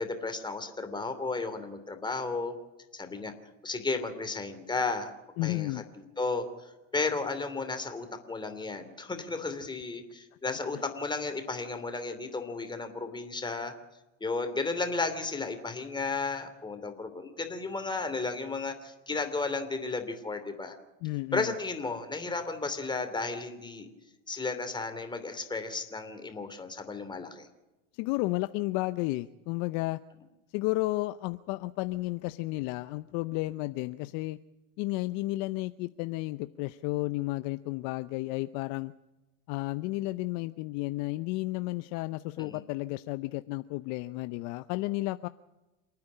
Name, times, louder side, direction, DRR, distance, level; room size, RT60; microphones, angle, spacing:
voice 1, 0.0-2.5 2.9-3.3 3.6-5.1 5.4-13.7 14.2-20.8 21.3-23.9 24.3-27.5 42.4-42.6, left 3 dB, 10° left, 7 dB, 2.9 m, -34 dB
voice 2, 5.4-5.8 10.7-10.8 21.0-21.5 27.9-30.0 30.5-34.4 34.8-38.9 39.5-45.3, left 20 dB, 50° left, 13 dB, 0.7 m, -32 dB
28.0 x 9.6 x 9.9 m, 1.1 s
supercardioid pair, 120°, 39 cm